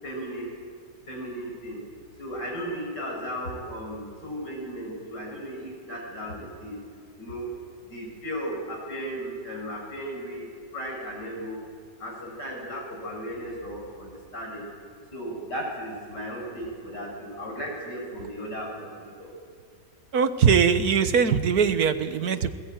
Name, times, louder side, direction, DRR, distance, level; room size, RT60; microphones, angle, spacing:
voice 1, 0.0-0.6 1.1-1.8 2.2-6.8 7.2-7.5 7.8-11.6 12.0-14.7 15.1-19.3, equal, 85° left, -2 dB, 7.5 m, -35 dB
voice 2, 20.1-22.5, right 6 dB, 65° right, 10 dB, 1.7 m, -21 dB
27.5 x 21.0 x 9.1 m, 2.1 s
omnidirectional pair, 1.8 m